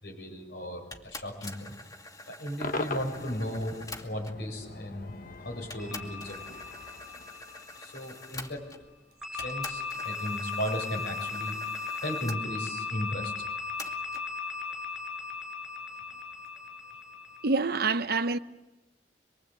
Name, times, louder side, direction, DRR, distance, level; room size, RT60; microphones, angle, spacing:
voice 1, 0.0-1.8 2.3-5.2 5.4-6.6 7.8-8.7 9.3-11.6 12.0-13.5, equal, 70° left, 7.2 m, -36 dB
sound 1, 0.9-4.5 5.2-5.3 5.7-9.0 9.4-12.4 13.8-14.3, left 2 dB, 20° left, 2.4 m, -46 dB
Cheering / Crowd / Fireworks, 2.6-7.9, left 2 dB, 55° left, 1.4 m, -41 dB
sound 2, 5.8-8.3 9.2-17.5, left 5 dB, 5° right, 6.1 m, -37 dB
voice 2, 17.4-18.4, right 4 dB, 60° right, 1.0 m, -26 dB
26.0 x 24.0 x 8.5 m
head